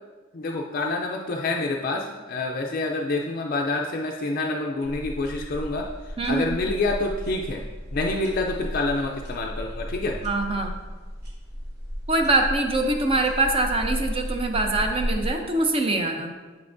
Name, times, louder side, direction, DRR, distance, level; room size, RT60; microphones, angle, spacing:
voice 1, 0.3-5.9 6.3-7.6 7.9-10.2, left 2 dB, 45° left, 1 dB, 0.4 m, -27 dB
sound 1, 4.8-15.3, equal, 50° right, 1.4 m, -34 dB
voice 2, 6.2-6.6 10.2-10.7 12.1-16.3, right 2 dB, 30° right, 4 dB, 0.6 m, -24 dB
7.8 x 5.7 x 2.5 m, 1.3 s
head